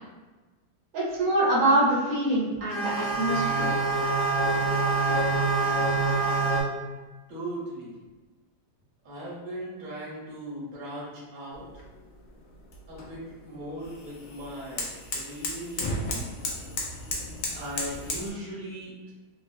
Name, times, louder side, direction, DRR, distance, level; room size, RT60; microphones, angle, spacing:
voice 1, 0.9-3.8, right 1 dB, 65° right, -6 dB, 1.1 m, -24 dB
sound 1, 2.7-6.6, right 3 dB, 90° left, 1.4 m, -25 dB
voice 2, 7.3-8.0 9.0-11.8 12.9-16.3 17.5-19.1, right 1 dB, 40° right, -6 dB, 0.7 m, -38 dB
sound 2, 11.5-18.3, left 2 dB, 70° left, 0.6 m, -36 dB
3.0 x 2.2 x 2.5 m, 1.2 s
omnidirectional pair, 1.8 m